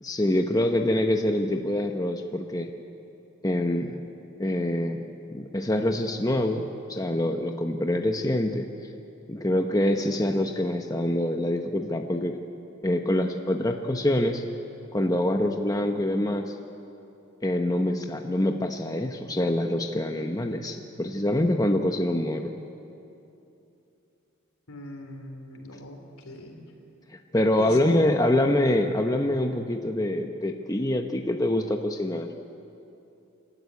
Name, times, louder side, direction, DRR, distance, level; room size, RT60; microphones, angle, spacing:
voice 1, 0.0-2.7 3.4-4.0 4.4-6.6 6.9-8.7 9.3-12.4 12.8-14.4 14.9-16.5 17.4-22.5 27.3-32.3, left 1 dB, 15° left, 4 dB, 0.8 m, -25 dB
voice 2, 24.7-26.6 27.6-28.1, left 1 dB, 80° left, 3 dB, 3.4 m, -40 dB
27.5 x 12.5 x 9.6 m, 2.8 s
head